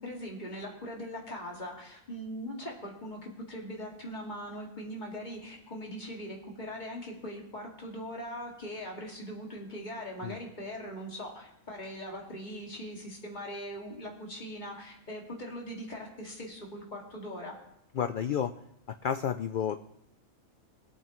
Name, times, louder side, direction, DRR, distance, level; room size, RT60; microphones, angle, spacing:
voice 1, 0.0-17.5, equal, 35° left, -1 dB, 2.3 m, -41 dB
voice 2, 17.9-18.5 19.0-19.8, left 8 dB, 90° left, 9 dB, 0.4 m, -30 dB
21.0 x 8.8 x 3.1 m, 0.80 s
omnidirectional pair, 1.4 m